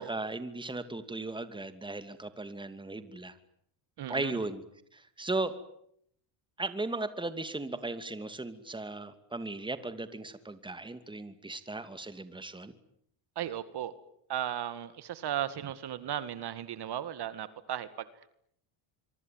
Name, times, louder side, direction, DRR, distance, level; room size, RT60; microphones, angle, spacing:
voice 1, 0.0-3.3 4.1-4.6 4.9-5.5 6.6-12.7, right 2 dB, 10° right, 11 dB, 2.6 m, -37 dB
voice 2, 4.0-4.4 13.4-13.9 14.3-18.3, right 11 dB, 50° right, 13 dB, 2.0 m, -36 dB
25.5 x 24.0 x 9.4 m, 0.71 s
cardioid pair, 110°, 50 cm